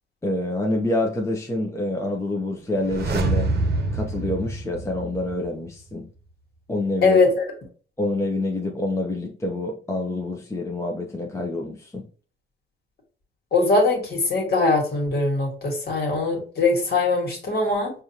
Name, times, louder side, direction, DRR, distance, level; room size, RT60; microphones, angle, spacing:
voice 1, 0.2-3.5 3.9-6.0 6.7-7.2 8.0-12.0, left 2 dB, 15° left, 0 dB, 0.7 m, -27 dB
sound 1, 2.7-5.6 5.9-6.0, right 2 dB, 55° right, 0.8 m, -26 dB
voice 2, 7.0-7.4 13.5-17.9, left 3 dB, 55° left, 1 dB, 1.6 m, -21 dB
4.9 x 2.4 x 2.8 m, 0.40 s
cardioid pair, 90°, 20 cm